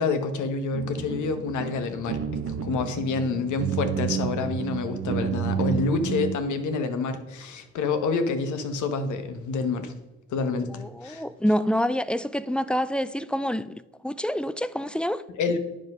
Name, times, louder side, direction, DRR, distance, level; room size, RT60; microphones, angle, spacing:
voice 1, 0.0-2.2 2.5-9.9 10.3-11.2 15.4-15.6, left 4 dB, 75° left, 1.1 m, -28 dB
sound 1, 0.7-6.4, right 8 dB, 50° right, 0.8 m, -30 dB
voice 2, 10.7-15.2, equal, 5° left, 0.3 m, -27 dB
9.6 x 5.1 x 5.4 m
cardioid pair, 90°, 30 cm